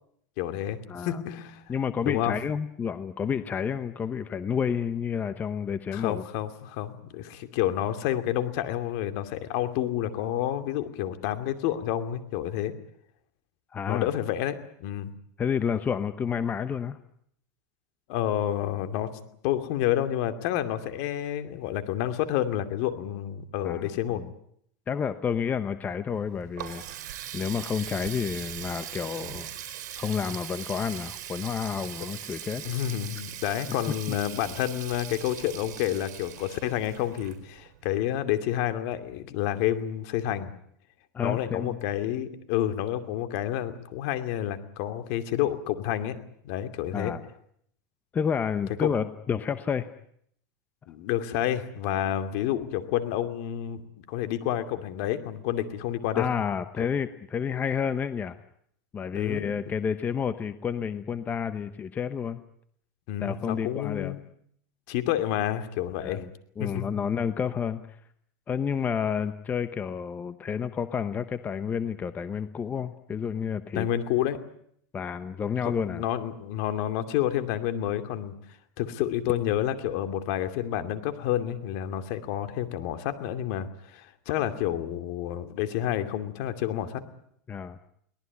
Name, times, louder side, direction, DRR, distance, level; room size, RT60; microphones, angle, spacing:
voice 1, 0.4-1.6 2.0-2.4 5.9-12.7 13.9-15.1 18.1-19.1 19.4-24.2 32.6-40.5 41.2-46.2 46.4-47.1 48.8-48.9 50.9-56.3 56.8-56.9 59.1-59.5 63.1-64.2 64.9-66.2 66.6-66.8 73.7-74.4 75.6-78.3 78.8-87.0, left 11 dB, 55° left, 9 dB, 2.5 m, -29 dB
voice 2, 0.9-1.2 1.7-6.2 13.7-14.1 15.4-17.0 23.6-24.3 24.9-26.8 27.3-29.5 30.0-32.6 34.1-34.2 41.1-41.8 46.9-47.2 48.1-49.9 56.1-58.4 58.9-62.4 63.2-64.1 66.0-66.3 66.6-68.0 68.5-73.9 74.9-76.0 87.5-87.8, left 7 dB, 20° left, 11 dB, 0.9 m, -30 dB
Water tap faucet, 26.1-37.8, right 11 dB, 75° right, 4.2 m, -40 dB
23.0 x 18.5 x 9.6 m, 0.69 s
supercardioid pair, 150°, 9 cm